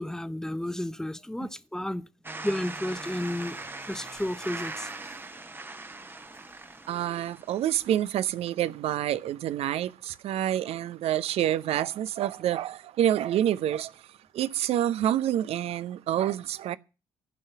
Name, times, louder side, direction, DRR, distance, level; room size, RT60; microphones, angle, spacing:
voice 1, 0.0-2.1 2.4-4.9, left 1 dB, 5° left, 0.8 m, -32 dB
sound 1, 2.2-8.0, right 2 dB, 15° right, 1.1 m, -40 dB
voice 2, 6.9-14.0 14.3-16.8, right 11 dB, 55° right, 0.7 m, -27 dB
15.0 x 5.6 x 8.1 m
figure-of-eight pair, 45°, 13 cm